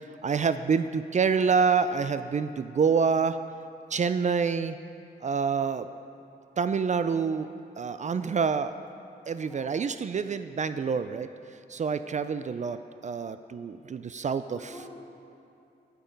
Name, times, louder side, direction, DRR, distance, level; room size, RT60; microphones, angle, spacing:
voice 1, 0.0-3.4 3.9-4.8 5.2-5.9 6.6-7.5 7.8-8.7 9.3-11.3 11.7-12.8 13.0-14.7, right 5 dB, 40° right, 11 dB, 0.4 m, -27 dB
voice 2, 8.1-8.4 9.5-9.8 14.6-14.9, right 1 dB, ahead, -6 dB, 2.1 m, -51 dB
8.3 x 8.2 x 5.2 m, 2.7 s
cardioid pair, 70°, 18 cm